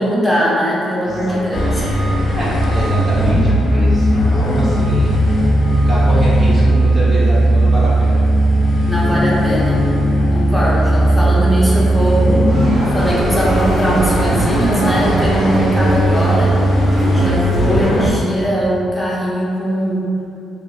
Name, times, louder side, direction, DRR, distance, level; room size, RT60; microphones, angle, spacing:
voice 1, 0.0-2.1 8.9-9.9 10.3-12.4 12.8-16.6 17.1-20.1, equal, 5° left, -7 dB, 0.7 m, -20 dB
voice 2, 1.0-1.8 2.3-5.1 5.8-8.2 10.2-10.4, right 1 dB, 45° right, -8 dB, 0.9 m, -24 dB
sound 1, 1.5-18.1, right 1 dB, 60° left, 0.5 m, -16 dB
sound 2, 12.4-18.0, equal, 65° right, 1.5 m, -25 dB
2.7 x 2.4 x 2.4 m, 2.5 s
cardioid pair, 90°, 0 cm